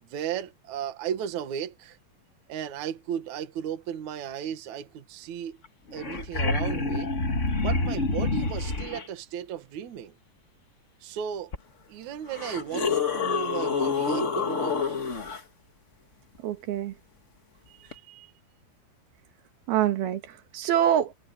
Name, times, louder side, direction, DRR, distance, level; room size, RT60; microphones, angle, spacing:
voice 1, 0.0-2.0 2.5-5.6 5.9-7.1 7.6-10.2 11.0-11.5 11.9-15.0 17.7-18.3, right 9 dB, 55° right, 2.8 m, -35 dB
sound 1, 5.6-5.7 5.9-9.0 11.5-11.6 12.3-15.4 17.9-18.0, left 4 dB, 50° left, 0.8 m, -27 dB
voice 2, 16.4-16.9 19.7-21.1, right 10 dB, 80° right, 3.5 m, -25 dB
omnidirectional pair, 4.3 m